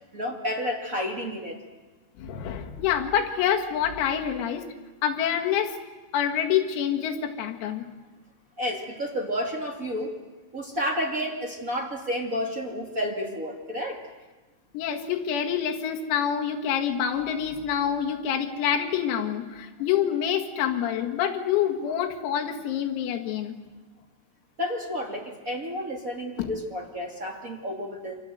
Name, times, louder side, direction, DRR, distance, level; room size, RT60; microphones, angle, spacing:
voice 1, 0.1-1.6 8.6-10.1 10.5-14.0 24.6-28.2, equal, 50° right, 0 dB, 0.9 m, -31 dB
voice 2, 2.2-4.7 5.0-5.8 6.1-7.9 14.7-23.5 26.4-26.5, left 9 dB, 85° left, 3 dB, 4.7 m, -27 dB
28.0 x 26.5 x 7.9 m, 1.2 s
omnidirectional pair, 6.0 m